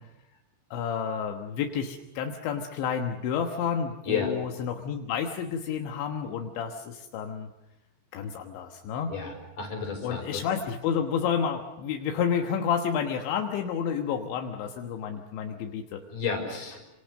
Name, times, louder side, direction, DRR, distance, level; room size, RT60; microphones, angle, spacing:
voice 1, 0.7-7.5 8.1-9.1 10.0-16.0, left 7 dB, 80° left, 3 dB, 3.7 m, -30 dB
voice 2, 9.1-10.4 16.1-16.8, left 6 dB, 45° left, 2 dB, 7.0 m, -31 dB
27.5 x 27.0 x 6.6 m, 0.96 s
omnidirectional pair, 5.2 m